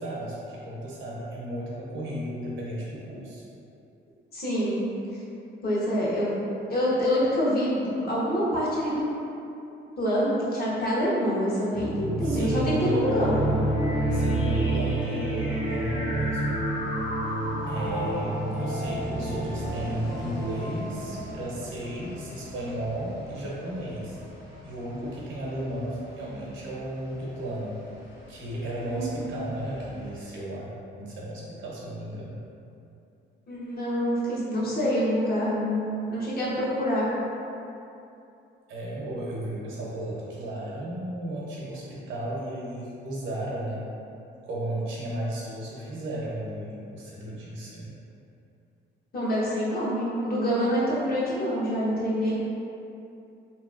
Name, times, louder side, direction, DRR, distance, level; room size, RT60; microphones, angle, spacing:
voice 1, 0.0-3.4 12.2-13.0 14.1-16.6 17.7-24.2 24.6-27.8 28.3-32.4 38.7-43.9 44.4-47.9, right 1 dB, 75° right, -5 dB, 0.8 m, -34 dB
voice 2, 4.3-4.8 5.6-6.4 6.7-9.0 10.0-13.4 28.8-29.2 33.5-37.1 49.1-52.3, equal, 50° left, -7 dB, 1.0 m, -26 dB
sound 1, 11.7-21.9, right 1 dB, 30° left, 0.7 m, -29 dB
sound 2, 13.5-30.2, equal, 80° left, 1.2 m, -43 dB
Wind instrument woodwind instrument, 15.4-19.6, equal, 10° right, 0.4 m, -42 dB
2.9 x 2.9 x 2.4 m, 2.7 s
cardioid pair, 90°, 20 cm